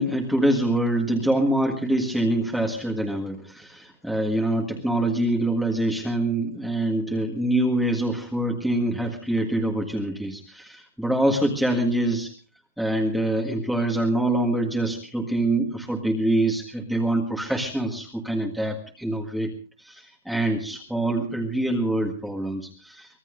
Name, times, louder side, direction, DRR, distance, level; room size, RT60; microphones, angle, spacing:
voice 1, 0.0-12.3 12.8-19.5 19.8-23.2, right 1 dB, ahead, 0 dB, 1.6 m, -25 dB
24.5 x 18.0 x 2.6 m, 0.38 s
hypercardioid pair, 165°, 0 cm